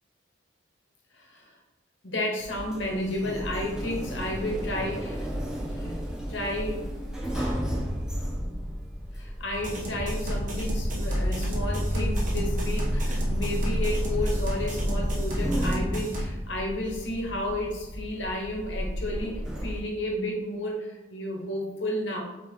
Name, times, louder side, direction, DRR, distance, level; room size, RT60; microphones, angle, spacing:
voice 1, 1.1-1.5 2.0-5.3 5.7-6.0 6.3-6.9 7.3-7.7 9.1-22.2, left 1 dB, 70° left, 0 dB, 1.2 m, -32 dB
Sliding door, 2.4-19.8, equal, 5° right, 0.7 m, -31 dB
sound 1, 9.5-16.2, equal, 45° right, 1.0 m, -36 dB
4.5 x 3.0 x 3.7 m, 1.0 s
head